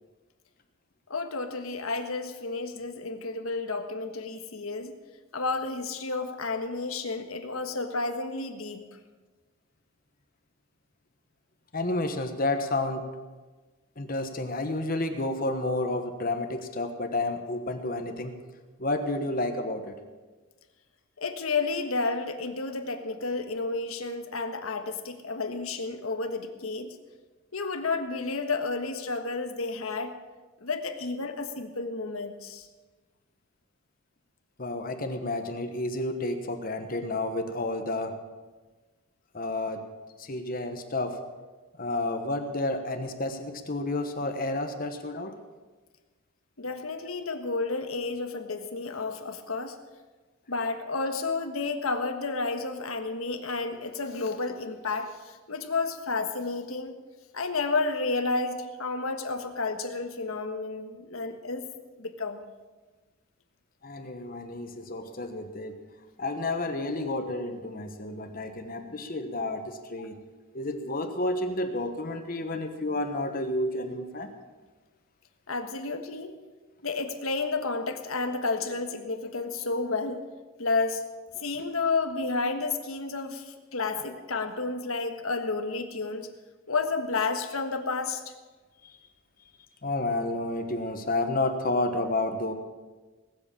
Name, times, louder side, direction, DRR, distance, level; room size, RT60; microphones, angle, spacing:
voice 1, 1.1-4.9 5.3-8.8 21.2-27.0 27.5-30.1 30.6-32.7 46.6-49.8 50.5-56.9 57.3-61.7 62.0-62.4 70.0-70.1 75.5-76.4 76.8-80.2 80.6-81.0 81.4-86.3 86.7-88.2, left 3 dB, 85° left, 6 dB, 1.5 m, -31 dB
voice 2, 11.7-13.1 14.0-18.3 18.8-20.0 34.6-38.1 39.3-39.8 40.2-41.2 41.8-45.4 63.8-65.7 66.2-70.2 70.5-74.3 88.8-89.0 89.8-92.5, left 2 dB, 45° left, 6 dB, 1.1 m, -30 dB
19.5 x 8.0 x 7.4 m, 1.3 s
head